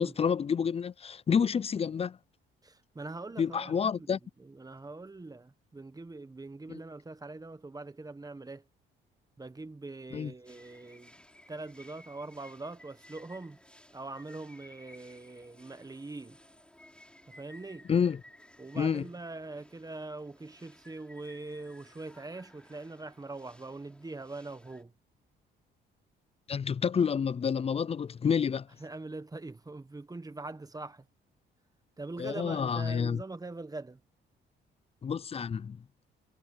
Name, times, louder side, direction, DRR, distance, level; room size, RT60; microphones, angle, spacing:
voice 1, 0.0-2.2 3.4-4.2 6.7-6.8 10.1-10.3 17.9-18.2 18.7-19.1 26.5-28.7 32.2-33.2 35.0-35.8, left 7 dB, 30° left, 0.4 m, -29 dB
voice 2, 2.6-8.6 9.4-11.2 11.5-13.6 13.9-16.4 17.3-17.9 18.6-24.9 28.8-31.0 32.0-34.0, right 2 dB, 20° right, 1.4 m, -43 dB
sound 1, 10.4-24.8, left 1 dB, 5° left, 6.3 m, -57 dB
cardioid pair, 90°, 20 cm